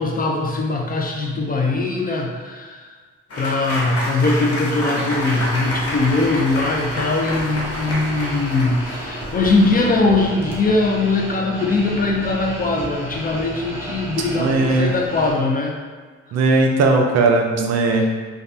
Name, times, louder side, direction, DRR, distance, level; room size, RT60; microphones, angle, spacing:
voice 1, 0.0-2.8 3.4-15.8 17.9-18.1, left 3 dB, 30° left, 0 dB, 0.4 m, -21 dB
Applause / Crowd, 3.3-10.1, left 1 dB, 50° left, 0.9 m, -28 dB
sound 1, 5.1-15.3, equal, 10° right, 0.8 m, -33 dB
voice 2, 14.3-14.9 16.3-18.1, right 3 dB, 60° right, 2 dB, 0.5 m, -17 dB
3.2 x 2.3 x 2.6 m, 1.5 s
cardioid pair, 90°, 30 cm